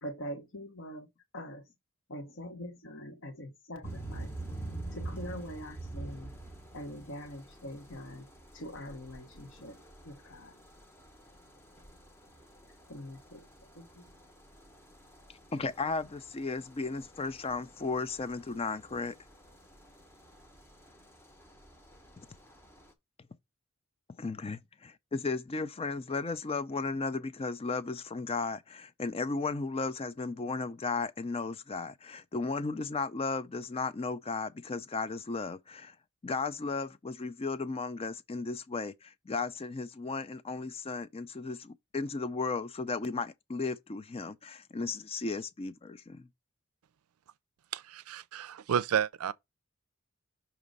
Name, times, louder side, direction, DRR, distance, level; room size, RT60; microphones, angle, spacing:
voice 1, 0.0-1.1 1.3-1.7 2.1-4.3 4.9-6.3 6.7-10.6 12.9-13.5 13.7-14.1, equal, 60° left, 1.2 m, -44 dB
sound 1, 3.8-22.9, right 2 dB, 10° left, 0.8 m, -47 dB
voice 2, 15.5-19.2 24.2-36.0 36.2-46.3, left 4 dB, 25° left, 0.4 m, -35 dB
voice 3, 47.7-49.3, right 8 dB, 85° right, 0.4 m, -31 dB
6.2 x 3.0 x 5.3 m
head